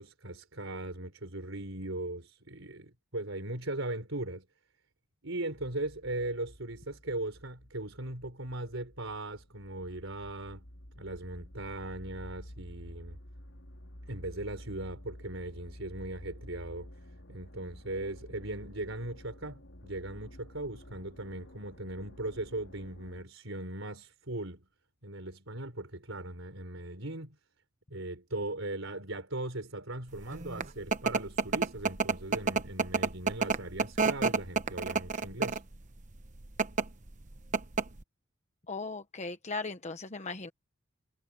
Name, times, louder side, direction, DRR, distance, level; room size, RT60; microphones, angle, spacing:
voice 1, 0.0-4.4 5.2-10.7 11.0-13.2 14.1-16.9 17.3-24.6 25.0-27.4 27.9-35.6, right 2 dB, 70° right, 4.5 m, -39 dB
sound 1, 5.5-23.2, equal, 70° left, 3.9 m, -51 dB
sound 2, 30.3-35.7 36.4-36.8 37.2-37.3 37.5-38.0, right 4 dB, 40° right, 1.1 m, -29 dB
voice 2, 38.7-40.5, left 3 dB, 35° left, 1.1 m, -38 dB
head